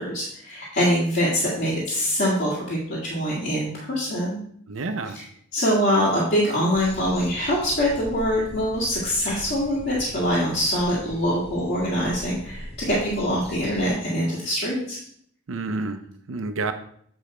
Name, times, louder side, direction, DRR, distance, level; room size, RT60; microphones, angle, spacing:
voice 1, 0.0-4.4 5.1-5.2 5.5-15.0, equal, 50° left, -6 dB, 1.8 m, -24 dB
voice 2, 4.7-5.2 15.5-16.7, right 3 dB, 75° right, 7 dB, 0.6 m, -29 dB
sound 1, 6.7-13.9, left 1 dB, 30° left, 0.7 m, -40 dB
8.1 x 5.0 x 4.3 m, 0.64 s
head